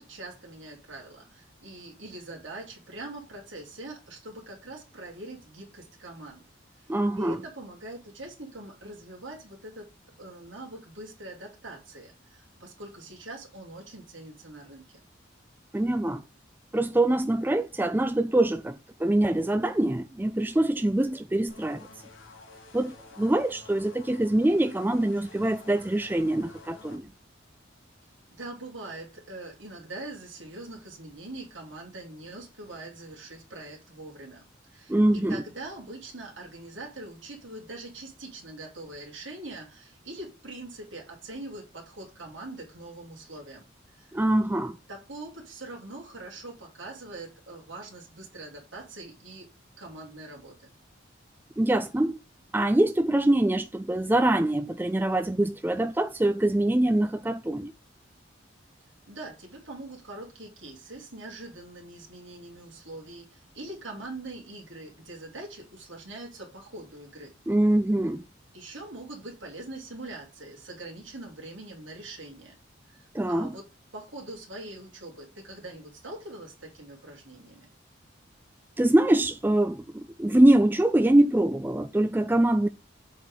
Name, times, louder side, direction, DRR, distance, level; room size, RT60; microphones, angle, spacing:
voice 1, 0.0-6.4 6.8-9.9 10.2-15.0 28.3-34.4 34.7-43.6 43.9-44.2 44.9-49.5 49.8-50.7 59.1-67.3 68.5-72.6 72.8-73.7 73.9-77.7, right 2 dB, 75° right, 2.9 m, -43 dB
voice 2, 6.9-7.4 15.7-16.2 16.7-21.9 22.7-27.1 34.9-35.4 44.1-44.8 51.6-52.2 52.5-57.7 67.5-68.2 73.1-73.6 78.8-82.7, right 1 dB, 10° right, 0.3 m, -24 dB
sound 1, 21.5-27.0, left 3 dB, 90° left, 2.0 m, -50 dB
7.3 x 4.5 x 5.1 m
head